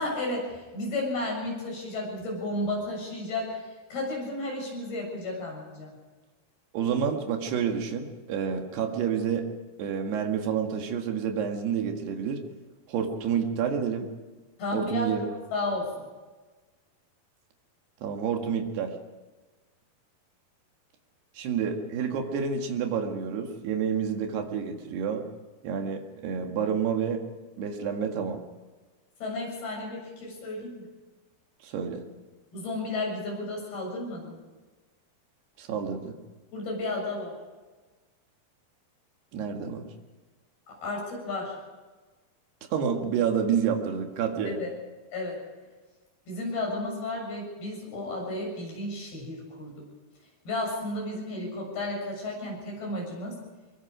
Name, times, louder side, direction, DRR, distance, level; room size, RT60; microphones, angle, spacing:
voice 1, 0.0-6.0 14.6-16.1 29.2-30.9 32.5-34.4 36.5-37.3 40.7-41.6 44.5-44.7 45.1-45.4 46.3-49.9 50.5-53.4, left 2 dB, 70° left, -1 dB, 9.1 m, -33 dB
voice 2, 6.7-9.5 9.8-12.4 12.9-14.1 14.7-15.3 18.0-18.9 21.4-25.2 25.6-27.2 27.6-28.4 31.6-32.0 35.6-36.1 39.3-39.9 42.7-44.6, right 7 dB, 90° right, 4 dB, 4.0 m, -29 dB
23.5 x 22.5 x 5.1 m, 1.3 s
omnidirectional pair, 4.5 m